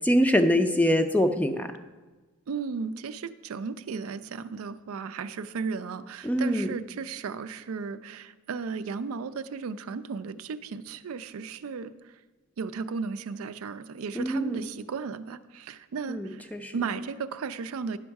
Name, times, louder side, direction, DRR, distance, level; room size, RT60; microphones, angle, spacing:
voice 1, 0.0-1.7 6.2-6.7 14.2-14.6 16.1-16.7, equal, 5° left, 7 dB, 0.4 m, -24 dB
voice 2, 2.5-12.2 12.6-18.0, right 5 dB, 80° right, 12 dB, 0.4 m, -35 dB
11.0 x 6.2 x 4.6 m, 1.2 s
head